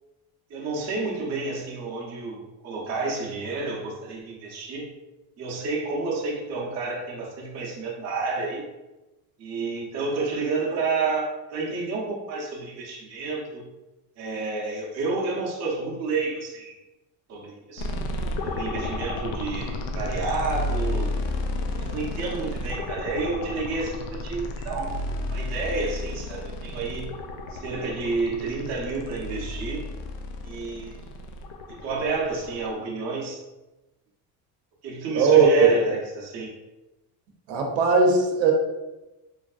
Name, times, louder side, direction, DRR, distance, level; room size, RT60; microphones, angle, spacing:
voice 1, 0.5-4.9 5.4-8.6 9.4-13.6 14.2-16.8 17.3-17.9 18.4-21.1 21.8-25.0 25.3-27.1 27.5-29.9 30.4-31.0 31.7-33.4 34.8-36.5, right 3 dB, 35° right, -3 dB, 0.7 m, -30 dB
sound 1, 17.8-32.7, left 1 dB, 75° left, 0.5 m, -32 dB
voice 2, 35.1-35.7 37.5-38.5, right 5 dB, 75° right, 0 dB, 0.7 m, -18 dB
3.3 x 2.5 x 2.4 m, 1.0 s
cardioid pair, 155°, 43 cm